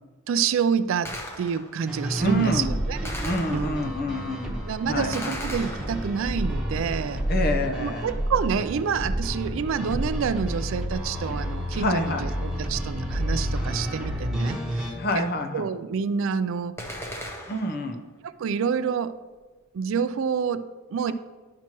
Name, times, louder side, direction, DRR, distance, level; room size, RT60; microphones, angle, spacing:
voice 1, 0.3-3.1 3.5-3.9 4.7-7.2 7.8-15.3 15.5-16.7 18.4-19.2 19.7-21.1, right 6 dB, 65° right, 13 dB, 0.3 m, -28 dB
Gunshot gunfire, 1.1-1.9 3.1-4.0 5.1-6.4 16.8-17.9, equal, 10° left, 0.8 m, -37 dB
sound 1, 1.9-14.9, equal, 5° right, 1.2 m, -30 dB
voice 2, 2.2-2.7 3.2-4.6 4.9-5.4 7.3-8.1 11.7-12.2 14.9-15.7 17.5-18.0, left 1 dB, 45° left, 6 dB, 0.7 m, -27 dB
10.5 x 5.8 x 3.0 m, 1.3 s
head